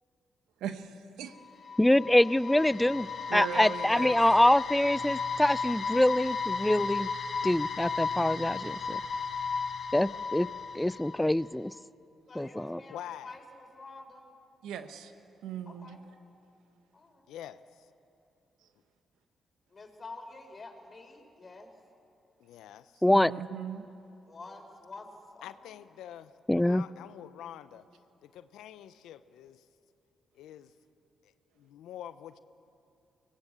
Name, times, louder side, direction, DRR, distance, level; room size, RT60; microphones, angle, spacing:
voice 1, 0.6-1.3 3.3-4.2 14.6-15.1 15.4-16.0 23.1-23.9, right 8 dB, 90° right, 9 dB, 1.2 m, -38 dB
sound 1, 1.4-11.5, left 5 dB, 60° left, 1.2 m, -34 dB
voice 2, 1.8-7.1 7.4-9.0 9.9-10.5 10.7-11.7 12.4-12.8 23.0-23.3 26.5-26.8, left 1 dB, 10° left, 20 dB, 0.4 m, -25 dB
voice 3, 12.3-14.2 15.7-16.0 16.9-17.3 19.7-21.7 24.3-25.1 25.3-25.8, left 3 dB, 40° left, 4 dB, 4.2 m, -48 dB
voice 4, 12.9-13.3 17.3-17.9 22.4-23.0 25.4-26.3 26.6-27.8 28.2-29.6 30.3-30.7 31.2-32.4, left 11 dB, 90° left, 13 dB, 0.7 m, -46 dB
23.5 x 19.0 x 8.0 m, 2.7 s
supercardioid pair, 65°, 0 cm